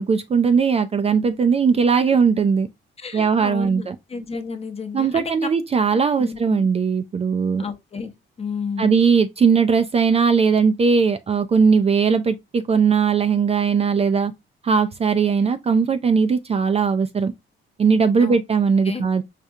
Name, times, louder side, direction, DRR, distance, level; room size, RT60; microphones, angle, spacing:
voice 1, 0.0-2.7 3.1-4.0 4.9-7.6 8.8-14.3 14.6-17.3 17.8-19.2, right 5 dB, 30° right, 0.4 m, -19 dB
voice 2, 3.0-5.3 5.9-6.7 7.6-8.1 8.4-8.9 18.2-18.3 18.8-19.1, left 5 dB, 30° left, 0.8 m, -32 dB
5.0 x 2.3 x 2.6 m
cardioid pair, 90°, 20 cm